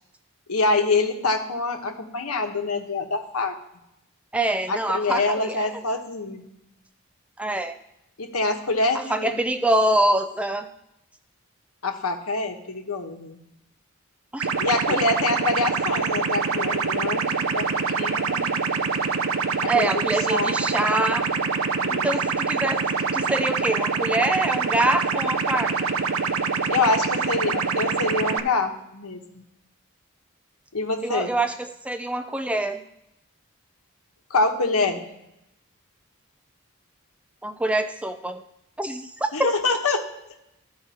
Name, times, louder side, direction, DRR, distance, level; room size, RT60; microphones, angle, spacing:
voice 1, 0.5-3.6 4.7-6.5 8.2-9.3 11.8-13.4 14.6-17.7 17.9-18.4 19.6-19.9 20.3-20.5 21.8-22.1 26.7-29.4 30.7-31.3 34.3-35.1 39.3-40.0, left 3 dB, 80° left, 5 dB, 1.1 m, -25 dB
voice 2, 4.3-5.7 7.4-7.7 9.1-10.7 14.3-14.5 14.9-15.0 19.7-21.2 22.0-22.8 23.1-25.9 31.0-32.8 37.4-38.4 38.8-39.5, right 1 dB, 5° right, 8 dB, 0.3 m, -25 dB
sound 1, 14.4-28.4, right 5 dB, 70° right, 0.6 m, -25 dB
13.0 x 4.7 x 4.2 m, 0.85 s
head